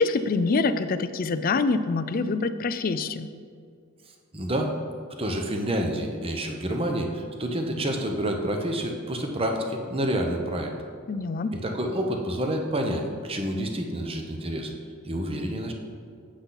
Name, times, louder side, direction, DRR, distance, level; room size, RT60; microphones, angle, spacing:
voice 1, 0.0-3.3 11.1-11.6, left 4 dB, 40° left, 12 dB, 0.4 m, -25 dB
voice 2, 4.3-4.7 5.2-10.7 11.6-14.7 15.0-15.7, right 1 dB, 25° right, 3 dB, 0.9 m, -28 dB
8.1 x 8.0 x 4.0 m, 2.3 s
head